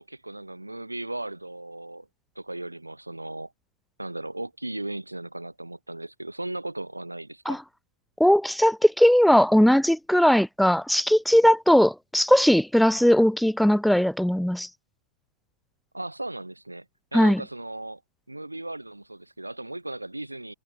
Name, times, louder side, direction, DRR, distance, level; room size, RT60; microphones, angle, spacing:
voice 1, 0.0-2.1 2.4-3.5 4.0-7.6 15.9-16.9 17.1-18.0 18.3-20.5, right 2 dB, 85° right, 3.8 m, -36 dB
voice 2, 8.2-14.7 17.1-17.4, equal, ahead, 0.4 m, -19 dB
figure-of-eight pair, 90°, 0 cm